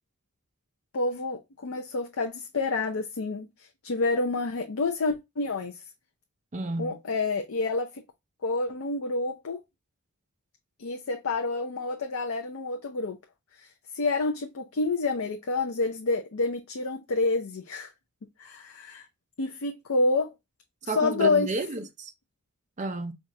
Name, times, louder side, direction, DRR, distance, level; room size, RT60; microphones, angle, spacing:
voice 1, 0.9-5.8 6.8-8.0 8.4-9.6 10.8-13.2 13.6-17.9 18.4-19.1 19.4-20.3 20.8-21.5, left 3 dB, 75° left, 0.6 m, -28 dB
voice 2, 6.5-7.0 20.9-22.1 22.8-23.1, right 2 dB, 35° right, 0.6 m, -31 dB
4.6 x 2.4 x 2.6 m
head